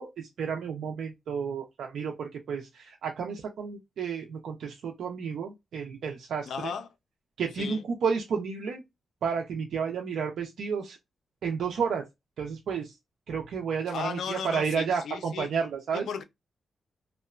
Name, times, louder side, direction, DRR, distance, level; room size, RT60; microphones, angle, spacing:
voice 1, 0.0-6.7 7.4-8.8 9.2-11.0 11.4-12.1 12.4-13.0 13.3-16.1, right 6 dB, 85° right, 0.4 m, -31 dB
voice 2, 6.5-6.9 7.6-7.8 13.9-15.5 15.9-16.2, left 6 dB, 85° left, 0.4 m, -35 dB
2.8 x 2.1 x 2.3 m
cardioid pair, 75°, 0 cm